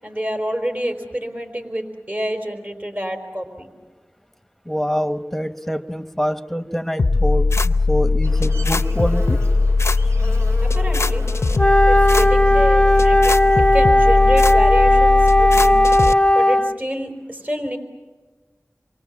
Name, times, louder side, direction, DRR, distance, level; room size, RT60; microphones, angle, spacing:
voice 1, 0.0-3.7 10.6-11.2 11.9-13.4 13.7-15.8 16.3-17.8, equal, 35° right, 5 dB, 4.6 m, -27 dB
voice 2, 4.6-9.4, equal, 5° left, 8 dB, 1.4 m, -25 dB
sound 1, 7.0-16.1, left 3 dB, 65° left, 0.7 m, -19 dB
Buzz, 8.2-13.8, right 1 dB, 70° right, 7.8 m, -36 dB
Wind instrument woodwind instrument, 11.6-16.8, left 1 dB, 20° left, 0.8 m, -15 dB
29.0 x 24.0 x 7.4 m, 1.3 s
wide cardioid pair, 45°, 5 cm